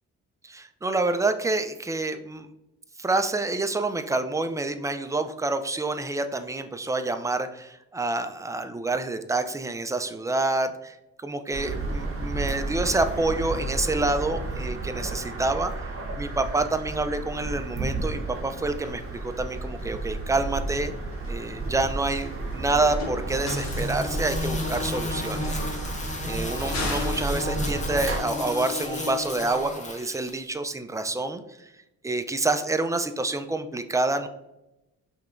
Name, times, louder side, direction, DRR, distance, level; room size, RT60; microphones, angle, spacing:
voice 1, 0.4-2.5 3.0-15.7 16.2-20.9 21.3-25.6 26.2-31.7 32.0-34.3, right 2 dB, 10° right, 8 dB, 0.3 m, -28 dB
sound 1, 11.5-28.2, right 3 dB, 45° right, 1.0 m, -32 dB
sound 2, 18.8-28.9, left 3 dB, 60° left, 1.2 m, -42 dB
sound 3, 23.3-30.4, left 3 dB, 25° left, 0.7 m, -33 dB
5.4 x 3.4 x 2.5 m, 0.90 s
cardioid pair, 90°, 30 cm